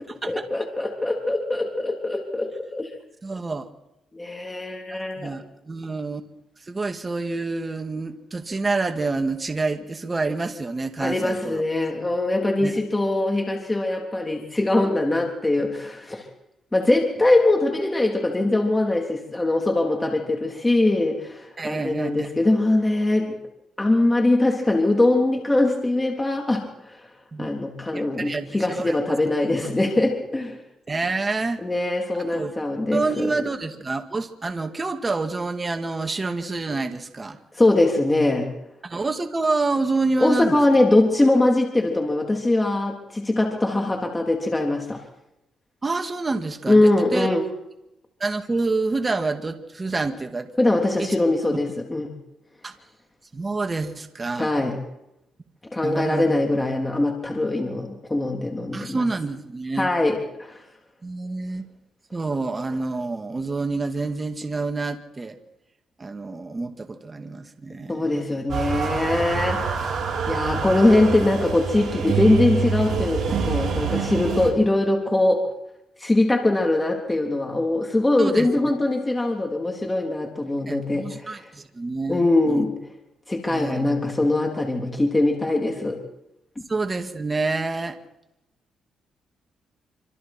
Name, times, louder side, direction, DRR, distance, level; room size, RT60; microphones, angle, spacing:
voice 1, 0.3-2.9 4.1-5.3 11.0-16.3 16.7-23.4 23.8-27.0 27.4-30.6 31.6-33.3 37.5-38.5 40.2-45.0 46.7-47.4 50.6-52.1 54.4-54.8 55.7-59.0 59.8-60.6 67.9-75.4 76.0-81.3 82.1-82.7 83.3-86.0, left 2 dB, 15° left, 1 dB, 3.5 m, -22 dB
voice 2, 3.2-3.7 5.2-6.2 6.6-11.6 12.6-12.8 21.6-22.3 27.3-27.5 27.9-29.0 29.6-29.7 30.9-31.6 32.3-32.5 32.9-37.4 38.8-40.6 45.8-47.3 48.2-50.5 51.0-51.1 52.6-52.7 53.3-54.5 55.8-56.4 58.7-59.9 61.0-61.7 62.1-65.4 66.0-68.3 78.2-78.7 80.7-82.6 83.5-83.9 86.7-88.0, right 3 dB, 25° right, 5 dB, 2.2 m, -28 dB
sound 1, 68.5-74.5, right 5 dB, 55° right, 7.4 m, -26 dB
27.0 x 26.0 x 4.5 m, 0.87 s
cardioid pair, 90°, 0 cm